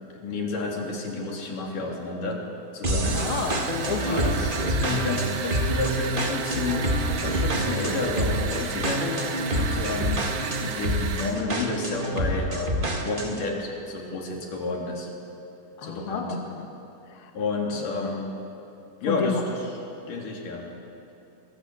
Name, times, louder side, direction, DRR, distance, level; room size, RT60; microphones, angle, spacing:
voice 1, 0.1-2.4 2.7-3.2 4.0-6.9 7.2-9.1 9.5-10.2 10.6-15.1 15.8-16.4 17.3-18.3 19.0-19.6 20.1-20.7, left 3 dB, 60° left, -1 dB, 4.6 m, -30 dB
sound 1, 2.8-13.5, right 1 dB, 65° right, 0.5 m, -27 dB
sound 2, 3.0-11.4, right 8 dB, 80° right, 3.1 m, -35 dB
voice 2, 3.1-4.4 15.8-16.7 17.1-17.3 17.7-18.1 19.1-19.4, left 5 dB, 45° left, 3 dB, 2.0 m, -31 dB
23.5 x 23.0 x 7.7 m, 2.8 s
omnidirectional pair, 4.2 m